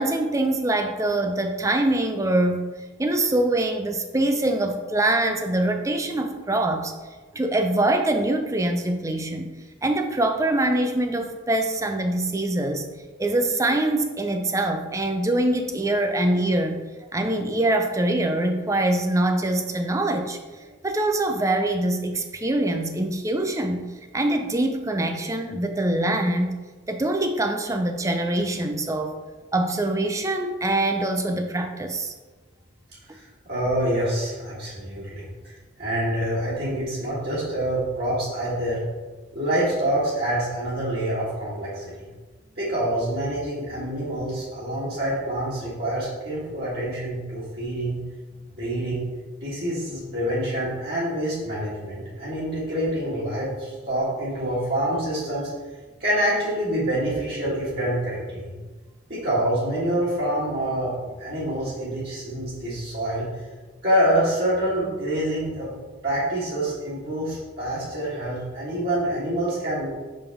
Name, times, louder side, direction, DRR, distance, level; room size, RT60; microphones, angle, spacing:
voice 1, 0.0-2.7 3.0-6.9 7.3-9.5 9.8-12.9 13.2-16.8 17.1-20.4 20.8-23.9 24.1-26.5 26.9-29.2 29.5-32.1, right 1 dB, 15° right, 5 dB, 0.5 m, -24 dB
voice 2, 33.1-35.2 35.8-38.8 39.3-42.1 42.6-47.9 48.6-49.1 49.4-55.5 56.0-58.5 59.1-63.3 63.8-65.7 66.0-69.9, right 1 dB, 55° right, -9 dB, 1.7 m, -26 dB
5.8 x 5.3 x 3.5 m, 1.3 s
head